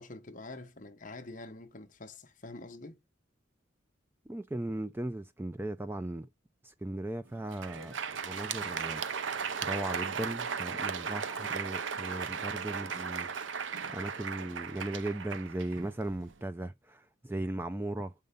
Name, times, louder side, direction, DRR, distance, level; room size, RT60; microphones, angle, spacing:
voice 1, 0.0-3.0, left 2 dB, 40° left, 0.9 m, -46 dB
voice 2, 4.3-6.3 6.6-7.9 8.2-9.2 9.6-13.3 13.6-18.1, right 1 dB, 10° right, 0.4 m, -37 dB
Crowd, 7.4-16.3, right 6 dB, 75° right, 0.6 m, -36 dB
6.6 x 5.3 x 5.2 m
head